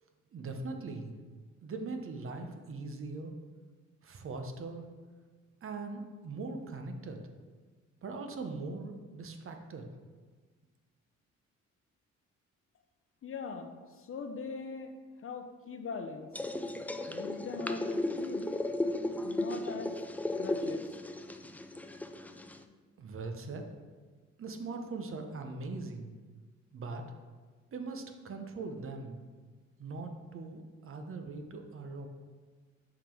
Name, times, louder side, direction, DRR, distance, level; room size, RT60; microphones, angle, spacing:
voice 1, 0.0-1.1 1.6-3.4 4.0-4.9 5.6-7.2 8.0-9.9 23.0-23.7 24.4-26.1 26.7-27.0 27.7-29.2 29.8-32.1, right 3 dB, 45° right, 5 dB, 0.8 m, -41 dB
voice 2, 13.2-14.9 15.2-16.3 17.1-18.5 19.2-19.9 20.4-21.0, left 4 dB, 45° left, 6 dB, 0.7 m, -41 dB
sound 1, 16.3-22.6, left 1 dB, 5° left, 0.3 m, -35 dB
7.1 x 3.8 x 4.5 m, 1.4 s
cardioid pair, 90°, 30 cm